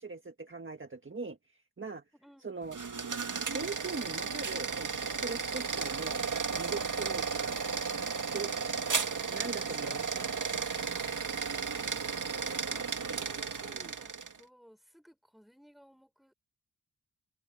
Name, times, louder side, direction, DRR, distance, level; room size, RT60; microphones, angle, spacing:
voice 1, 0.0-2.0 2.4-2.8 3.5-6.2 6.6-7.6 8.3-8.5 9.3-10.2, right 4 dB, 35° right, 1.6 m, -41 dB
voice 2, 2.1-2.5 11.7-16.3, equal, ahead, 6.2 m, -58 dB
sound 1, 2.6-14.4, right 5 dB, 60° right, 2.2 m, -34 dB
open air
wide cardioid pair, 80°, 36 cm